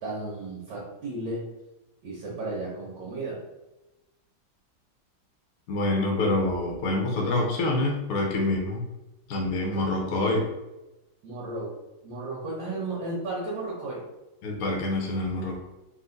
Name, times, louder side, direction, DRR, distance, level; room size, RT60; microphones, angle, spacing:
voice 1, 0.0-1.5 2.0-3.4 9.7-9.9 11.2-11.7 12.0-14.0, right 2 dB, 75° right, -6 dB, 1.6 m, -34 dB
voice 2, 5.7-8.8 9.3-10.5 14.4-15.6, left 2 dB, 60° left, 0 dB, 1.0 m, -26 dB
4.0 x 2.5 x 3.9 m, 1.0 s
omnidirectional pair, 2.1 m